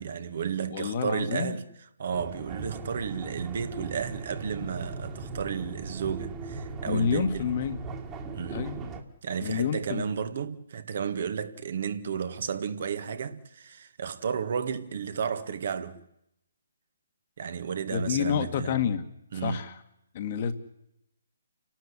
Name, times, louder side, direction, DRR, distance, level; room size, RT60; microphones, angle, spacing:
voice 1, 0.0-1.6 2.0-7.5 8.3-8.7 9.2-16.1 17.4-18.7 19.3-19.7, right 7 dB, 55° right, 1.8 m, -33 dB
voice 2, 0.7-1.6 6.8-7.8 8.5-8.7 9.4-10.1 17.9-19.0 19.3-19.8 20.1-20.5, left 7 dB, 40° left, 1.7 m, -28 dB
sound 1, 2.1-9.0, right 3 dB, 20° right, 2.1 m, -38 dB
29.0 x 12.0 x 10.0 m
hypercardioid pair, 150°, 0 cm